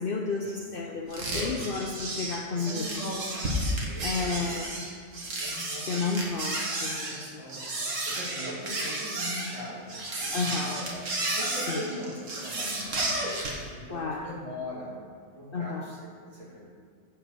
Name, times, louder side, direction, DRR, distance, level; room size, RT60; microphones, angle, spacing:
voice 1, 0.0-2.9 4.0-4.7 5.9-7.4 10.3-10.8 11.7-11.8 13.9-14.3 15.5-15.9, left 4 dB, 55° left, 1 dB, 0.7 m, -32 dB
sound 1, 1.1-13.6, right 1 dB, 80° right, 1.9 m, -32 dB
voice 2, 2.5-4.7 5.2-6.3 7.0-11.0 11.3-13.3 13.7-14.9 15.3-16.0 16.3-16.6, equal, 25° right, -6 dB, 2.4 m, -40 dB
8.6 x 5.5 x 6.7 m, 2.1 s
omnidirectional pair, 1.3 m